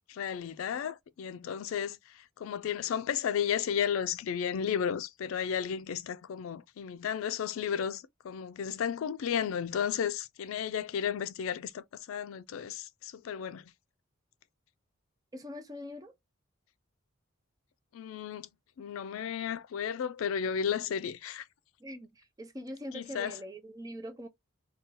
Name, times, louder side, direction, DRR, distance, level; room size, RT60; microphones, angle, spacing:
voice 1, 0.1-13.7 17.9-18.5 18.8-21.5 22.9-23.4, left 8 dB, 80° left, 0.3 m, -33 dB
voice 2, 15.3-16.1 21.8-24.3, equal, 20° right, 0.5 m, -43 dB
2.6 x 2.3 x 3.6 m
head